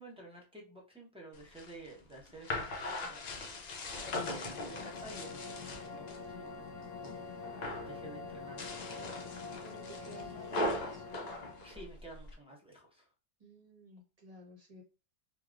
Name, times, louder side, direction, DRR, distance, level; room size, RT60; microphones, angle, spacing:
voice 1, 0.0-3.2 4.0-6.7 7.4-9.1 10.0-10.3 11.6-13.1, right 2 dB, 5° right, -3 dB, 0.6 m, -52 dB
sound 1, 1.3-6.2 6.6-7.2 7.4-7.9 8.4-12.3, left 2 dB, 55° left, 0.5 m, -40 dB
sound 2, 4.0-11.8, left 4 dB, 85° left, 1.0 m, -46 dB
voice 2, 9.6-11.0 13.4-14.8, right 1 dB, 35° right, 0 dB, 0.9 m, -54 dB
3.3 x 2.3 x 2.4 m, 0.33 s
omnidirectional pair, 1.3 m